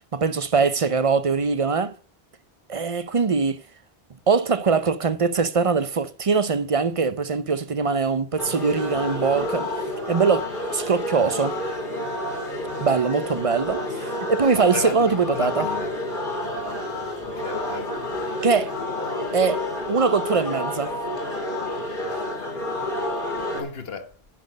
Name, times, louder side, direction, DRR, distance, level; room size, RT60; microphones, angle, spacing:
voice 1, 0.1-1.9 2.7-3.6 4.3-9.7 10.1-11.6 12.8-13.8 14.3-15.7 18.4-18.7 19.3-20.9, right 5 dB, 40° right, 0.6 m, -22 dB
sound 1, 8.4-23.6, left 1 dB, 55° left, 2.6 m, -29 dB
voice 2, 14.5-15.9 17.2-18.0 23.5-24.1, left 5 dB, 75° left, 1.4 m, -34 dB
10.5 x 6.3 x 5.2 m
omnidirectional pair, 1.0 m